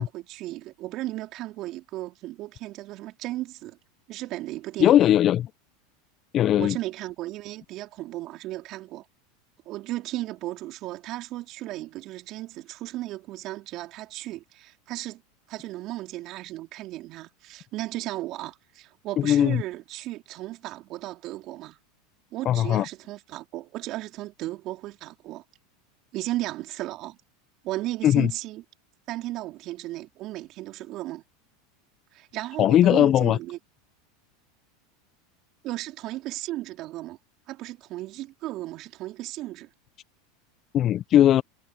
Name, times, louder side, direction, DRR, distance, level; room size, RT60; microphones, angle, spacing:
voice 1, 0.0-3.8 4.1-5.0 6.6-9.0 9.7-15.2 15.5-21.8 22.3-25.4 26.1-27.2 27.6-28.6 29.1-31.2 32.1-33.6 35.6-37.2 37.5-39.7, right 16 dB, 50° right, 3.9 m, -35 dB
voice 2, 4.8-5.5 6.3-6.8 19.2-19.6 22.4-22.8 28.0-28.3 32.6-33.4 40.7-41.4, left 11 dB, 40° left, 0.9 m, -19 dB
hypercardioid pair, 90°, 0 cm